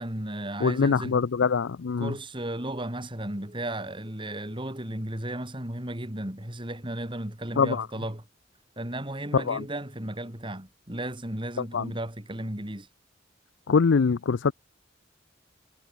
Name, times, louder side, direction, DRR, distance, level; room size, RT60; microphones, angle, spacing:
voice 1, 0.0-1.2 2.0-8.2 8.8-12.9, right 1 dB, 25° right, 3.9 m, -34 dB
voice 2, 0.6-2.1 7.6-7.9 9.3-9.6 11.7-11.9 13.7-14.5, left 5 dB, 80° left, 0.5 m, -23 dB
head